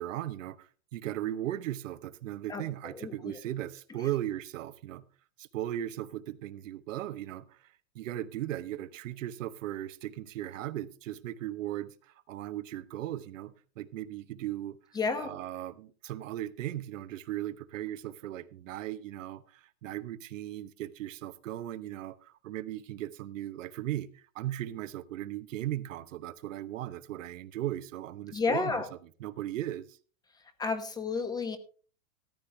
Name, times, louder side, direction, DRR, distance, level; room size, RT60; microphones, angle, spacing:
voice 1, 0.0-5.0 5.4-14.8 15.1-28.8 29.2-30.0, right 13 dB, 70° right, 1.1 m, -37 dB
voice 2, 2.5-3.1 15.0-15.3 28.3-28.9 30.6-31.6, left 4 dB, 10° left, 0.9 m, -31 dB
14.0 x 11.5 x 3.4 m
supercardioid pair, 150°, 40 cm